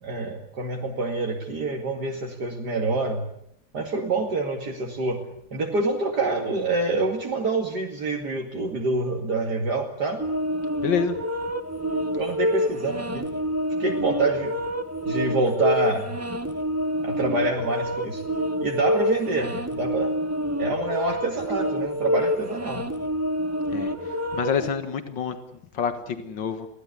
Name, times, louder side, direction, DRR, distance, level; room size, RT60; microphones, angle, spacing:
voice 1, 0.0-3.2 3.7-5.2 5.5-10.2 12.1-13.3 13.8-14.5 15.1-16.1 17.0-18.2 18.6-20.1 20.6-22.9, right 3 dB, 60° right, 1 dB, 2.8 m, -26 dB
sound 1, 10.2-24.7, equal, 10° right, 1.5 m, -27 dB
voice 2, 10.8-11.2 23.7-23.9 24.4-25.4 25.7-26.7, left 6 dB, 85° left, 9 dB, 2.3 m, -27 dB
23.5 x 17.0 x 9.9 m, 0.75 s
omnidirectional pair, 2.0 m